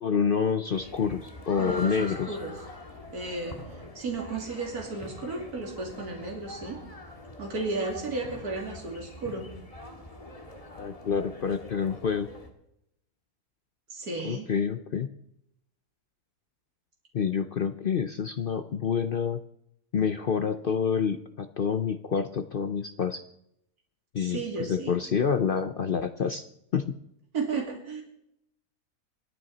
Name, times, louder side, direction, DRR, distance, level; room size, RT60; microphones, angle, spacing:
voice 1, 0.0-2.4 10.8-12.3 14.2-15.1 17.1-19.4 19.9-23.2 24.1-26.5 26.7-27.0, left 6 dB, 55° left, 10 dB, 0.6 m, -28 dB
sound 1, 0.7-12.5, left 1 dB, 20° left, 1.9 m, -44 dB
voice 2, 1.6-2.6 3.1-3.6 3.9-6.8 7.4-9.5 13.9-14.5 24.2-24.9 27.3-28.0, right 3 dB, 65° right, 0 dB, 3.2 m, -34 dB
27.0 x 9.2 x 4.1 m, 0.77 s
omnidirectional pair, 1.7 m